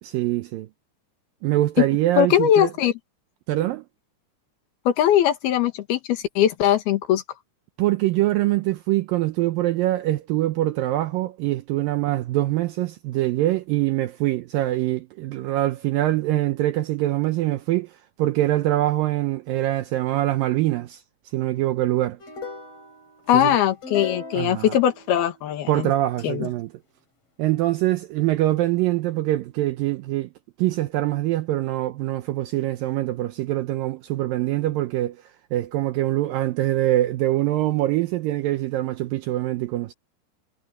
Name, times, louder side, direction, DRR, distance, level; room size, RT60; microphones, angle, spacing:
voice 1, 0.0-0.7 1.4-2.7 3.5-3.8 7.8-21.0 21.3-22.2 23.3-23.6 24.3-24.8 25.7-26.7 27.4-30.3 30.6-39.9, right 15 dB, 80° right, 2.1 m, -24 dB
voice 2, 2.2-2.9 4.9-7.2 23.3-25.9 26.2-26.5, left 11 dB, 70° left, 3.6 m, -20 dB
sound 1, 22.2-25.6, left 4 dB, 35° left, 5.4 m, -38 dB
omnidirectional pair, 4.7 m